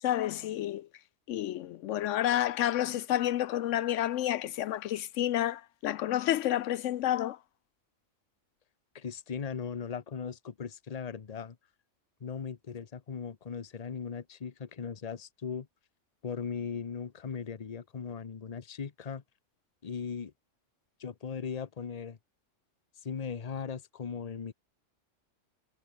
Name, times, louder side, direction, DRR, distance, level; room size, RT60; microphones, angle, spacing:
voice 1, 0.0-0.9 1.3-7.4, left 12 dB, 80° left, 0.9 m, -30 dB
voice 2, 8.9-11.6 12.2-15.7 16.2-19.2 19.8-20.3 21.0-22.2 23.0-24.5, left 6 dB, 35° left, 0.9 m, -38 dB
omnidirectional pair, 1.3 m